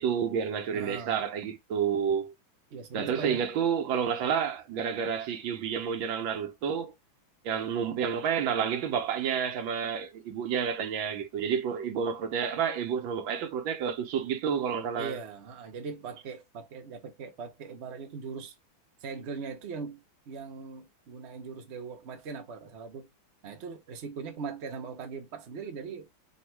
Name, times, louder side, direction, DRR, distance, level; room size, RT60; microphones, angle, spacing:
voice 1, 0.0-2.3 2.9-6.9 7.4-15.2, right 7 dB, 75° right, 1.4 m, -30 dB
voice 2, 0.7-1.2 2.7-3.4 15.0-18.5 19.0-23.1 23.4-26.1, right 5 dB, 50° right, 0.8 m, -40 dB
3.5 x 2.6 x 4.5 m
omnidirectional pair, 2.1 m